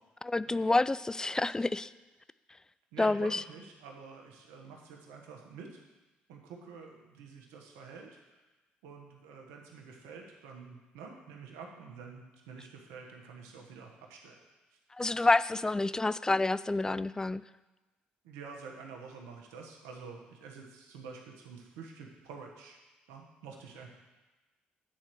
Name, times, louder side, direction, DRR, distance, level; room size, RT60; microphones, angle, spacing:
voice 1, 0.2-1.9 3.0-3.4 15.0-17.4, left 2 dB, 15° left, 17 dB, 0.3 m, -28 dB
voice 2, 2.9-5.8 6.3-8.2 8.8-14.4 14.7-14.8 18.2-22.8 23.1-23.9, right 5 dB, 85° right, 1 dB, 1.2 m, -48 dB
8.9 x 4.4 x 6.7 m, 1.2 s
hypercardioid pair, 55°, 4 cm